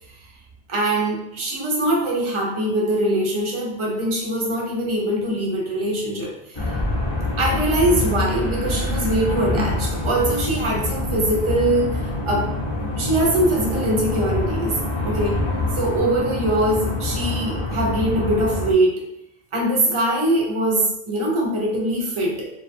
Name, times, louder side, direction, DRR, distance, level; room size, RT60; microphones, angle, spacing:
voice 1, 0.7-6.7 7.4-12.5 13.0-14.8 15.0-15.4 15.7-19.0 19.5-22.5, right 1 dB, 50° right, -2 dB, 0.3 m, -22 dB
sound 1, 6.5-18.7, left 2 dB, 45° left, 0.3 m, -25 dB
2.3 x 2.2 x 2.5 m, 0.84 s
omnidirectional pair, 1.2 m